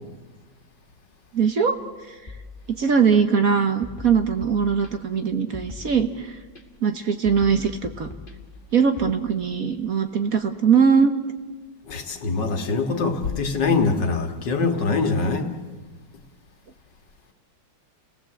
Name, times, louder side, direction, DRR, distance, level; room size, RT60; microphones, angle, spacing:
voice 1, 1.3-1.8 2.8-6.4 6.8-8.1 8.7-11.1, right 6 dB, 50° right, 1.4 m, -21 dB
sound 1, 2.3-3.2 3.8-5.2 5.5-6.6 7.2-9.1, left 3 dB, 25° left, 1.8 m, -41 dB
voice 2, 11.9-15.5, left 4 dB, 65° left, 2.4 m, -23 dB
29.5 x 18.5 x 7.7 m
omnidirectional pair, 2.1 m